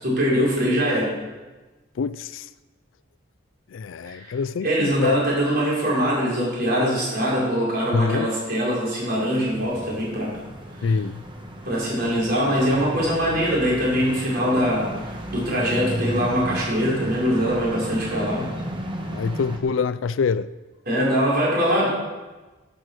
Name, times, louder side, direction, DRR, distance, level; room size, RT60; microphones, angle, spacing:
voice 1, 0.0-1.1 4.0-4.4 4.6-10.4 10.8-11.0 11.6-18.5 20.8-21.9, equal, 50° right, 4.7 m, -23 dB
voice 2, 2.0-2.5 3.7-5.2 7.9-8.3 10.8-11.2 19.0-20.5, left 5 dB, 80° left, 0.4 m, -25 dB
sound 1, 9.5-19.6, right 1 dB, 25° right, 1.4 m, -34 dB
12.5 x 9.2 x 6.4 m
head